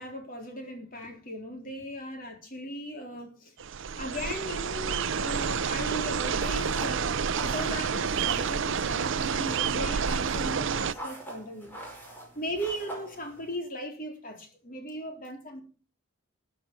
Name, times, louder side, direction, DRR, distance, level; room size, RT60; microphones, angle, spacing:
voice 1, 0.0-3.5 3.9-11.9 12.3-15.6, equal, 40° left, 4.0 m, -38 dB
sound 1, 3.6-10.9, right 6 dB, 60° right, 0.5 m, -29 dB
sound 2, 6.4-13.6, right 1 dB, 10° left, 5.1 m, -44 dB
14.0 x 8.4 x 6.1 m
head